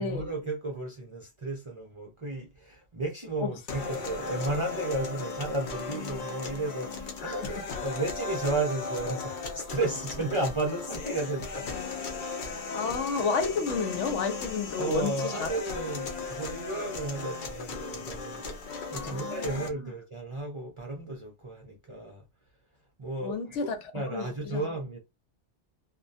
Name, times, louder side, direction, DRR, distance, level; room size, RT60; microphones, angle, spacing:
voice 1, 0.0-11.7 14.8-22.3 23.0-25.0, right 2 dB, 40° right, 0.4 m, -33 dB
sound 1, 3.7-19.7, left 4 dB, 55° left, 0.6 m, -36 dB
voice 2, 12.7-15.5 18.9-19.5 23.2-23.8 24.1-24.6, left 5 dB, 80° left, 0.9 m, -31 dB
2.2 x 2.1 x 2.6 m
omnidirectional pair, 1.2 m